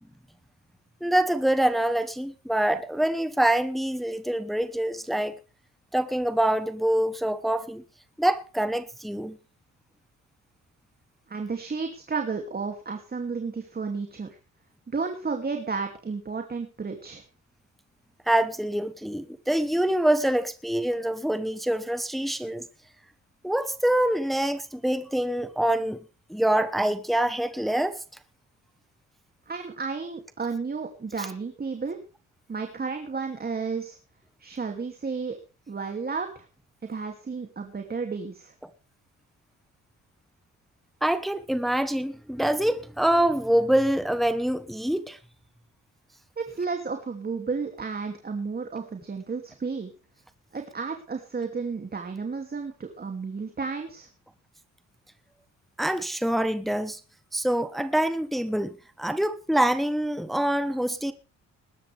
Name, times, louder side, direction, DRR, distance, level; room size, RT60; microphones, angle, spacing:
voice 1, 1.0-5.4 5.9-7.8 8.2-9.4 18.3-22.6 23.4-26.0 26.3-28.0 31.2-31.3 38.6-38.7 41.0-45.2 55.8-57.0 57.3-61.1, right 1 dB, ahead, 1.2 m, -25 dB
voice 2, 11.3-14.4 14.9-17.2 29.5-32.0 32.5-34.0 34.4-35.4 35.7-36.5 36.9-38.5 46.4-49.9 50.5-54.1, right 4 dB, 30° right, 2.7 m, -32 dB
20.5 x 12.0 x 3.5 m
cardioid pair, 90°, 30 cm